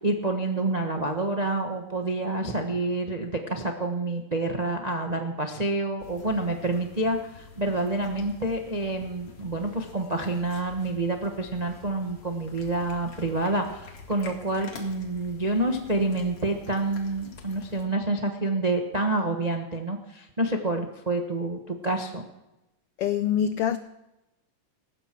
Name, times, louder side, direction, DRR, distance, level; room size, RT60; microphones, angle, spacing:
voice 1, 0.0-22.3, right 2 dB, 80° right, 0.3 m, -28 dB
sound 1, 6.0-17.9, left 5 dB, 55° left, 3.0 m, -48 dB
voice 2, 23.0-23.8, left 9 dB, 90° left, 1.2 m, -24 dB
19.0 x 16.0 x 4.6 m
omnidirectional pair, 3.3 m